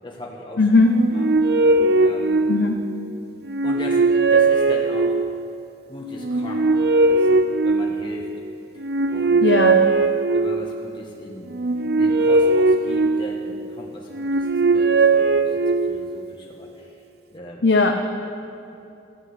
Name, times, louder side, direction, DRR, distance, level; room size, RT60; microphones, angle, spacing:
voice 1, 0.0-0.7 1.1-1.3 1.9-2.4 3.6-5.2 5.9-8.3 8.7-8.8 9.1-9.8 10.3-11.5 11.9-17.0 17.3-17.6, left 1 dB, 25° left, -2 dB, 1.5 m, -38 dB
voice 2, 0.6-1.0 2.5-2.8 9.4-9.8 17.6-17.9, left 3 dB, 75° left, 4 dB, 0.8 m, -17 dB
sound 1, 0.8-3.0 3.5-5.5 6.2-8.3 8.8-10.8 11.5-13.6 14.1-16.1, right 3 dB, 60° right, 0.6 m, -19 dB
15.5 x 8.6 x 9.8 m, 2.7 s
head